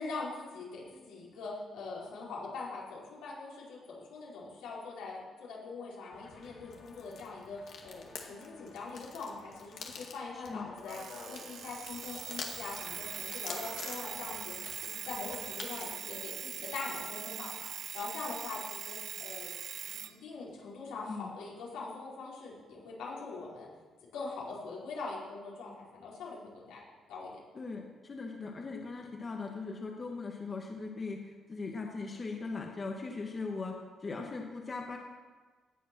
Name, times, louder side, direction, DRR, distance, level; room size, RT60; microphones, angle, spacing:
voice 1, 0.0-11.0 11.3-14.5 14.8-19.5 19.8-23.7 24.1-26.8 27.1-27.3, left 3 dB, 90° left, -6 dB, 4.7 m, -42 dB
sound 1, 6.1-16.0, left 5 dB, 65° left, 2.1 m, -48 dB
voice 2, 10.3-10.7 21.1-21.3 27.5-33.8 34.0-35.0, left 4 dB, 35° left, 1 dB, 1.7 m, -39 dB
Alarm, 10.9-20.1, right 8 dB, 60° right, 0.6 m, -42 dB
18.0 x 7.4 x 6.1 m, 1.4 s
cardioid pair, 90°, 0 cm